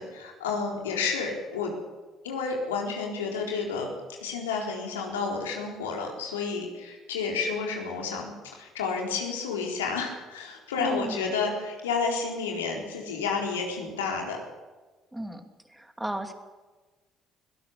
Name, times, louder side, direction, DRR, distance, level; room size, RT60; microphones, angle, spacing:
voice 1, 0.0-1.7 2.2-3.9 4.2-14.4, left 5 dB, 80° left, 0 dB, 4.0 m, -30 dB
voice 2, 10.8-11.3 15.1-16.3, right 1 dB, 10° right, 7 dB, 2.6 m, -35 dB
23.0 x 18.0 x 7.0 m, 1.3 s
hypercardioid pair, 50°, 0 cm